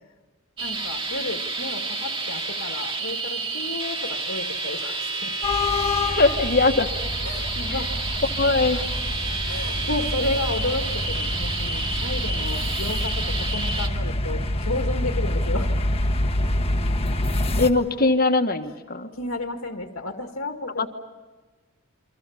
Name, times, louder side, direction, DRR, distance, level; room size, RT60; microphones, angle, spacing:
voice 1, 0.6-5.3 7.2-7.9 8.7-8.9 9.4-15.8 19.1-20.9, left 2 dB, 75° left, 3 dB, 1.9 m, -32 dB
sound 1, 0.6-13.9, right 3 dB, 25° right, 2.2 m, -30 dB
sound 2, 5.4-17.7, left 1 dB, 25° left, 1.5 m, -27 dB
voice 2, 6.1-6.9 7.7-7.8 8.3-8.8 17.6-19.1 20.8-20.9, left 3 dB, 45° left, 6 dB, 1.6 m, -21 dB
28.5 x 25.5 x 7.2 m, 1.2 s
head